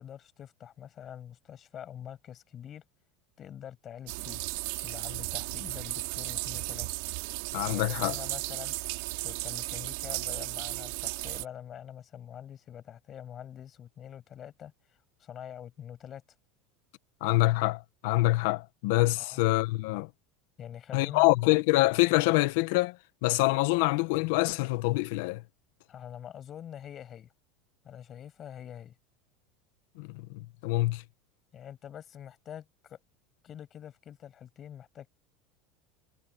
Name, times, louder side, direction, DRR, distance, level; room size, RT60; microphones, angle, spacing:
voice 1, 0.0-2.8 3.4-4.4 4.8-6.9 7.7-8.7 9.2-16.2 19.2-19.4 20.6-21.3 25.9-27.3 27.8-29.0 31.5-33.0 33.4-35.1, left 9 dB, 25° left, 7.4 m, -45 dB
sound 1, 4.1-11.4, right 24 dB, 65° right, 3.4 m, -35 dB
voice 2, 7.5-8.2 17.2-20.1 20.9-23.0 23.2-25.4 30.0-31.0, left 21 dB, 65° left, 1.3 m, -26 dB
supercardioid pair, 165°, 0 cm